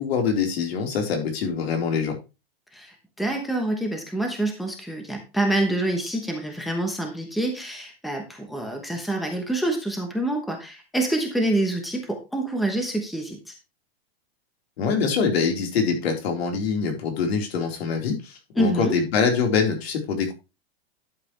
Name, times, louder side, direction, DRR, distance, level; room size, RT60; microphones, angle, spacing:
voice 1, 0.0-2.2 14.8-20.3, left 5 dB, 75° left, 2 dB, 4.3 m, -24 dB
voice 2, 2.7-13.5 18.6-19.0, right 1 dB, ahead, 3 dB, 1.0 m, -26 dB
11.5 x 7.8 x 3.3 m, 0.28 s
supercardioid pair, 170°, 31 cm